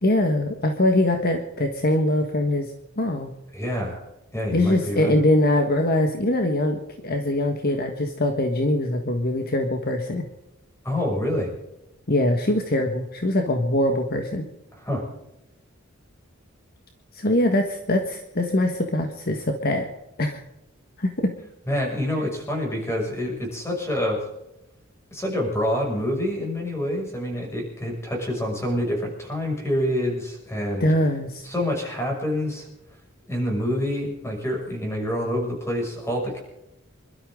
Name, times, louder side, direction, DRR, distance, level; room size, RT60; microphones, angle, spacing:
voice 1, 0.0-3.3 4.5-10.2 12.1-14.5 17.1-19.9 20.2-20.4 21.0-21.3 30.8-31.4, left 1 dB, 50° left, 4 dB, 1.5 m, -23 dB
voice 2, 3.5-4.0 4.3-5.2 10.8-11.5 14.7-15.0 21.7-24.2 25.1-30.9 31.4-32.7 33.3-36.4, left 1 dB, 15° left, 0 dB, 6.5 m, -27 dB
26.5 x 13.0 x 3.8 m, 0.92 s
head